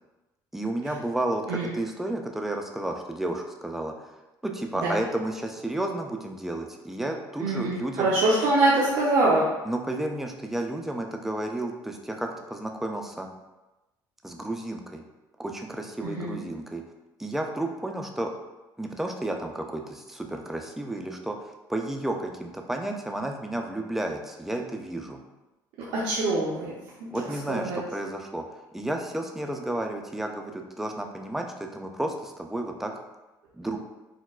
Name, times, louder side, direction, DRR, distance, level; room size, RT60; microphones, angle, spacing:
voice 1, 0.5-3.9 4.4-8.1 9.6-13.3 14.2-15.0 15.4-16.8 17.2-18.3 18.8-25.2 27.1-28.4 28.7-32.9 33.6-33.8, right 1 dB, 5° right, 2 dB, 0.3 m, -32 dB
voice 2, 7.4-9.5 16.0-16.4 25.9-26.7 27.5-27.8, right 2 dB, 85° right, -6 dB, 0.6 m, -24 dB
4.2 x 2.0 x 2.3 m, 1.0 s
cardioid pair, 125°, 8 cm